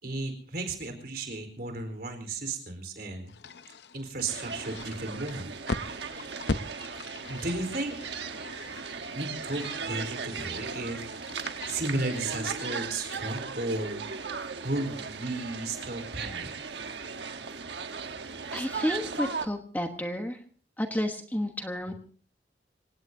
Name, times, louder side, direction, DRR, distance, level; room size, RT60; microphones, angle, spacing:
voice 1, 0.0-3.3 3.9-5.5 7.3-8.0 9.1-11.1 11.6-14.0 14.6-16.5, right 2 dB, 55° right, 6 dB, 4.3 m, -34 dB
sound 1, 3.3-12.8, left 3 dB, 70° left, 0.7 m, -40 dB
sound 2, 4.3-19.5, right 5 dB, 70° right, 1.3 m, -37 dB
voice 2, 18.5-20.4 20.8-21.9, equal, 10° left, 5 dB, 1.1 m, -31 dB
26.5 x 17.5 x 2.7 m, 0.42 s
head